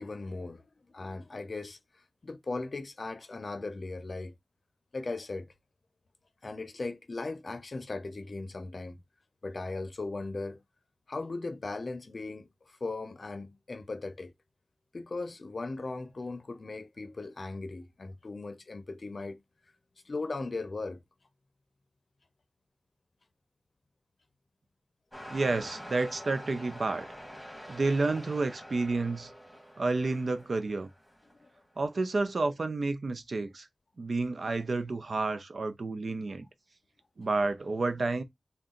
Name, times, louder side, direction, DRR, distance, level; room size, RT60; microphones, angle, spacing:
voice 1, 0.0-4.3 4.9-5.5 6.4-9.0 9.4-10.6 11.1-14.3 14.9-19.4 20.0-21.0 25.2-25.3 31.3-31.5, left 3 dB, 60° left, 0.6 m, -38 dB
sound 1, 25.1-31.5 32.2-32.3, equal, ahead, 1.8 m, -47 dB
voice 2, 25.3-27.1 27.7-29.3 29.8-30.9 31.8-33.7 34.0-36.4 37.2-38.2, right 3 dB, 70° right, 0.6 m, -30 dB
3.8 x 2.3 x 3.7 m
wide cardioid pair, 95°, 0 cm